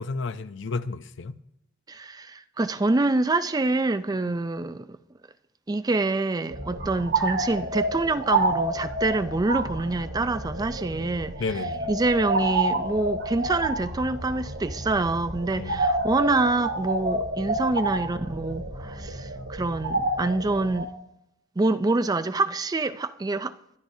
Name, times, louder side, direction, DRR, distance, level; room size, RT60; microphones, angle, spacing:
voice 1, 0.0-1.4 11.4-11.9 15.6-15.9, left 4 dB, 65° left, 0.6 m, -32 dB
voice 2, 1.9-5.0 5.7-11.6 11.9-20.9 21.6-23.8, right 2 dB, 20° right, 0.4 m, -26 dB
sound 1, 6.5-20.8, right 2 dB, 90° right, 3.0 m, -29 dB
23.0 x 12.0 x 2.7 m
head